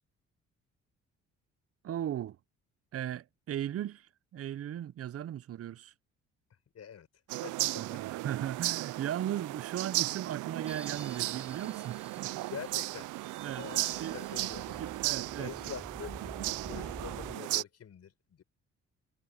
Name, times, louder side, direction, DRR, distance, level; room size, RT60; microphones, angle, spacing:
voice 1, 1.8-2.4 2.9-5.9 7.8-12.4 13.4-13.7 14.0-14.2 14.8-15.5, right 11 dB, 50° right, 0.6 m, -37 dB
voice 2, 6.7-7.1 7.4-8.0 12.5-13.1 13.6-14.9 15.4-18.4, left 8 dB, 55° left, 5.6 m, -45 dB
sound 1, 7.3-17.6, right 19 dB, 85° right, 0.5 m, -35 dB
sound 2, 10.7-17.4, equal, 5° right, 4.4 m, -49 dB
cardioid pair, 90°, 30 cm